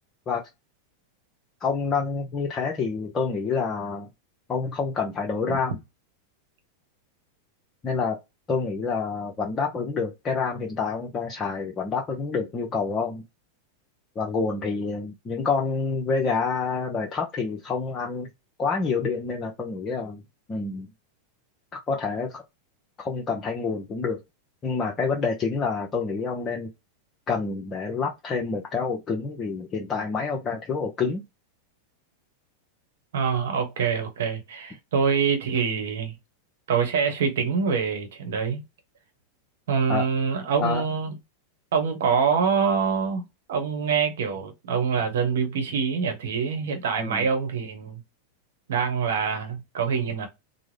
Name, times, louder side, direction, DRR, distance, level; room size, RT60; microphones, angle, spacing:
voice 1, 1.6-4.1 4.5-5.8 7.8-8.2 8.5-13.2 14.2-18.3 18.6-20.2 20.5-20.9 21.9-22.4 23.0-24.2 24.6-26.7 27.3-31.2 39.9-40.0 40.6-40.8 47.0-47.3, left 5 dB, 25° left, 0.6 m, -27 dB
voice 2, 33.1-36.1 36.7-38.6 39.7-41.1 41.7-48.0 48.7-50.3, right 6 dB, 60° right, 1.0 m, -25 dB
3.6 x 2.0 x 3.2 m
figure-of-eight pair, 90°, 0 cm